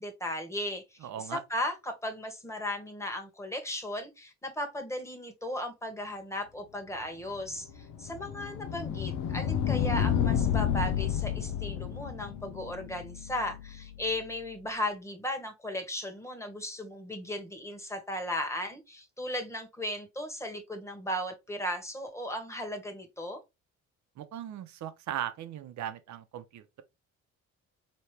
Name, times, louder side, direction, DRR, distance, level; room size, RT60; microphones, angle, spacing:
voice 1, 0.0-23.4, left 1 dB, 10° left, 1.4 m, -36 dB
voice 2, 1.0-1.4 24.2-26.8, right 11 dB, 70° right, 0.8 m, -38 dB
sound 1, 7.3-14.2, left 9 dB, 75° left, 0.6 m, -31 dB
4.3 x 3.1 x 3.2 m
cardioid pair, 90°, 30 cm